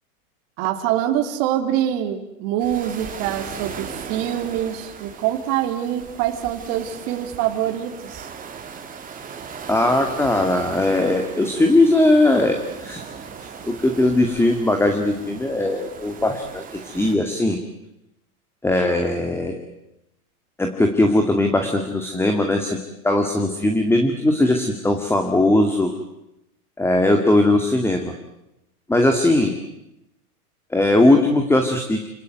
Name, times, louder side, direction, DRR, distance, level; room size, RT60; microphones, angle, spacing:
voice 1, 0.6-8.3, right 11 dB, 45° right, 4 dB, 3.1 m, -25 dB
sound 1, 2.6-17.1, right 6 dB, 20° right, 3.6 m, -38 dB
voice 2, 9.7-13.0 13.4-17.6 18.6-19.5 20.6-22.8 23.0-25.9 26.8-28.1 28.9-29.5 30.7-32.1, left 1 dB, 5° left, 4 dB, 2.4 m, -19 dB
29.0 x 19.0 x 9.5 m, 0.89 s
hypercardioid pair, 125°, 45 cm